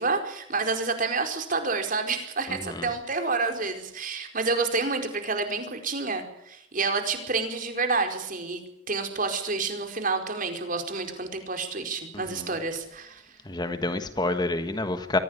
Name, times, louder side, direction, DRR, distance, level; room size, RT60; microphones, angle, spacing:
voice 1, 0.0-8.6 8.9-13.2, right 4 dB, 45° right, 5 dB, 4.7 m, -29 dB
voice 2, 2.5-2.9 12.1-12.4 13.4-15.2, left 2 dB, 20° left, 9 dB, 1.4 m, -28 dB
24.0 x 16.5 x 9.9 m, 0.75 s
head